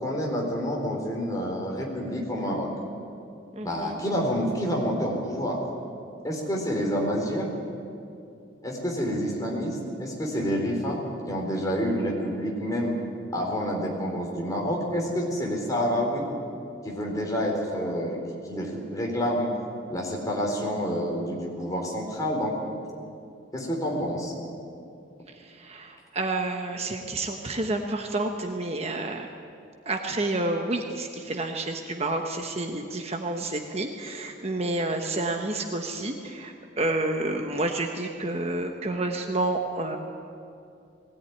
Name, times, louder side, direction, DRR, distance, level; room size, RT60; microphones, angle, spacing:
voice 1, 0.0-2.7 3.6-5.6 6.2-7.5 8.6-13.0 13.3-16.3 16.8-18.2 18.4-19.5 19.9-22.6 23.5-24.3, equal, 20° left, -1 dB, 4.2 m, -28 dB
voice 2, 3.5-4.0 25.3-29.3 29.8-40.0, right 2 dB, 35° right, 3 dB, 1.1 m, -29 dB
20.0 x 17.5 x 9.6 m, 2.5 s
head